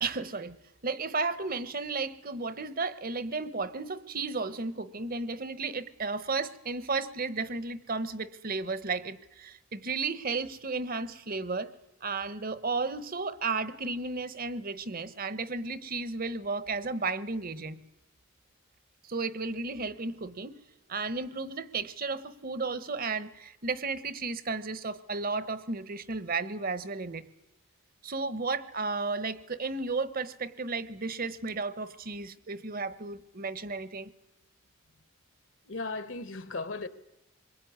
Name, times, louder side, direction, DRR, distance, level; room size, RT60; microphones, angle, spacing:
voice 1, 0.0-0.6 0.8-11.7 12.0-17.8 19.0-20.6 20.9-27.3 28.0-34.1, right 4 dB, 40° right, 1.1 m, -33 dB
voice 2, 35.7-36.9, left 3 dB, 65° left, 1.4 m, -36 dB
25.5 x 22.0 x 9.5 m
head